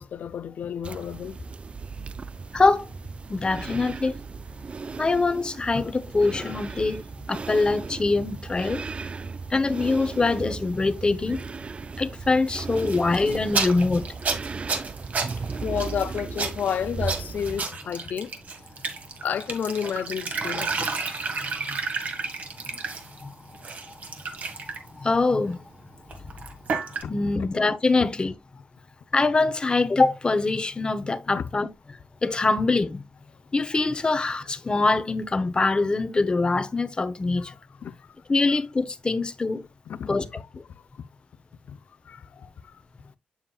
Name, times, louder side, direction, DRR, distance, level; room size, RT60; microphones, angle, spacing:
voice 1, 0.0-1.4 15.4-18.3 19.2-20.9 27.0-27.5 28.0-28.1 31.4-31.5 37.8-38.1 39.9-40.2 41.0-41.1 41.7-41.8 42.0-42.8, left 8 dB, 70° left, 0.5 m, -31 dB
sound 1, 0.8-17.7, right 4 dB, 40° right, 0.3 m, -36 dB
voice 2, 2.5-2.9 3.3-4.1 5.0-7.0 7.3-8.8 9.5-11.4 12.0-14.1 21.7-21.8 23.2-23.3 25.0-25.6 27.1-28.3 29.1-31.7 32.2-33.0 33.5-37.5 38.3-39.6 40.1-40.2, left 3 dB, 30° left, 0.8 m, -23 dB
sound 2, 12.5-23.2 23.5-24.9 26.1-27.0, right 4 dB, 60° right, 1.6 m, -31 dB
7.2 x 7.2 x 2.3 m
cardioid pair, 70°, 3 cm